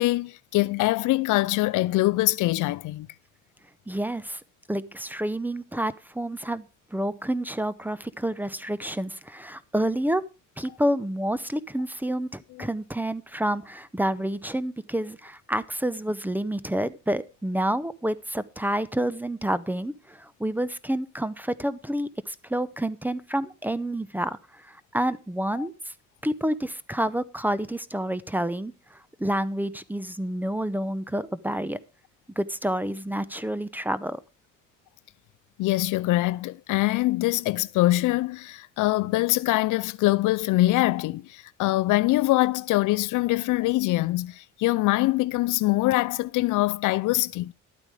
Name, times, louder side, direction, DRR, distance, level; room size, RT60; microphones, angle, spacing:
voice 1, 0.0-3.1 25.6-25.7 35.6-47.5, left 18 dB, 85° left, 0.5 m, -23 dB
voice 2, 3.9-4.4 4.7-6.6 6.9-10.2 10.6-25.9 26.2-31.8 32.4-34.2, right 1 dB, 5° right, 0.8 m, -29 dB
12.0 x 9.0 x 4.8 m
cardioid pair, 90°, 30 cm